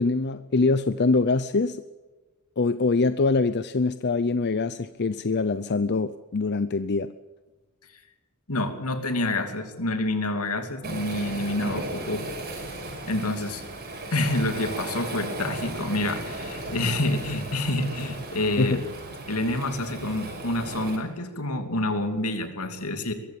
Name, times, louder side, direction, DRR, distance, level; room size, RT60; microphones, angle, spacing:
voice 1, 0.0-1.8 2.6-7.1 18.6-18.8, left 3 dB, 50° left, 13 dB, 0.6 m, -24 dB
voice 2, 8.5-12.3 13.1-13.6 14.1-18.8 19.3-23.1, left 2 dB, 80° left, 7 dB, 2.8 m, -28 dB
Waves surf, 10.8-21.0, right 2 dB, 45° right, 5.7 m, -36 dB
22.5 x 14.5 x 8.8 m, 1.2 s
head